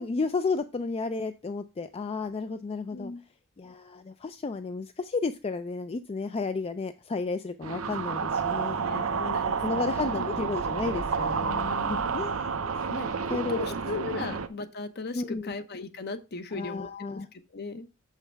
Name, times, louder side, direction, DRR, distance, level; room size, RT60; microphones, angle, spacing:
voice 1, 0.0-3.1 3.6-9.2 9.6-12.8 13.3-13.7 14.2-14.3 15.1-15.5 16.5-17.3, left 4 dB, 30° left, 10 dB, 0.3 m, -33 dB
sound 1, 7.6-14.5, right 5 dB, 85° right, 0.7 m, -30 dB
voice 2, 8.8-10.5 11.4-12.1 12.9-17.9, left 3 dB, 50° left, 10 dB, 0.8 m, -38 dB
7.0 x 5.7 x 4.5 m, 0.30 s
head